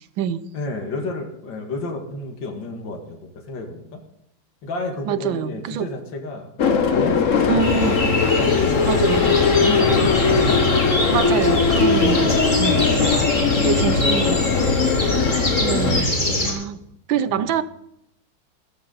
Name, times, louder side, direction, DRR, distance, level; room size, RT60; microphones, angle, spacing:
voice 1, 0.5-4.0 4.6-7.9 8.4-11.5 11.9-14.2 14.9-15.3 15.5-16.4 17.3-17.5, left 3 dB, 75° left, 2.6 m, -32 dB
voice 2, 5.1-5.9 7.5-8.0 8.9-9.4 11.1-12.3 12.6-12.9 13.6-14.4 15.6-16.2 16.4-16.8 17.1-17.6, right 8 dB, 90° right, 1.5 m, -25 dB
sound 1, 6.6-16.0, left 5 dB, 45° left, 1.3 m, -20 dB
sound 2, 7.6-16.5, left 1 dB, 25° left, 3.0 m, -23 dB
15.0 x 13.5 x 4.0 m
omnidirectional pair, 2.1 m